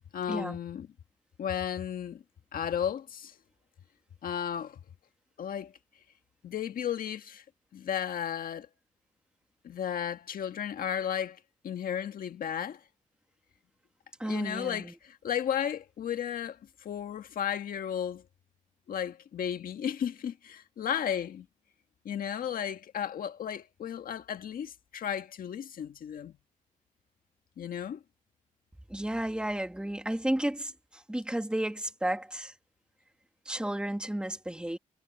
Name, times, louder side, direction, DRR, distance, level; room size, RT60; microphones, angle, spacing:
voice 1, 0.1-0.9 1.4-2.2 2.5-3.3 4.2-4.8 5.4-5.7 6.4-7.4 7.7-8.7 9.6-12.8 14.2-18.2 18.9-21.5 22.1-26.4 27.6-28.0, left 9 dB, 80° left, 1.7 m, -34 dB
voice 2, 14.2-14.9 28.9-32.5 33.5-34.8, right 1 dB, 5° right, 2.1 m, -32 dB
cardioid pair, 75°, 15 cm